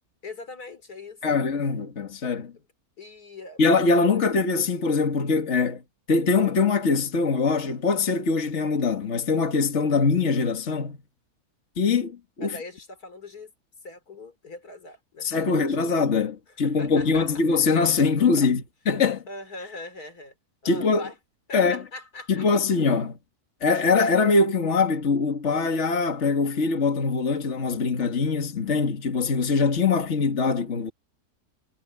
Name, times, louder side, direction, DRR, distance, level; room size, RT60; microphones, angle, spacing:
voice 1, 0.2-1.2 2.5-2.6 3.0-3.6 4.1-4.2 12.4-13.5 13.8-15.9 16.6-17.3 17.7-17.8 18.4-18.5 19.3-20.3 20.6-21.2 21.5-22.5, left 2 dB, 90° left, 4.2 m, -41 dB
voice 2, 1.2-2.5 3.6-5.8 6.1-11.0 11.8-12.6 15.2-19.2 20.6-21.1 21.5-21.8 22.3-23.2 23.6-30.9, left 4 dB, 50° left, 2.1 m, -23 dB
omnidirectional pair, 1.6 m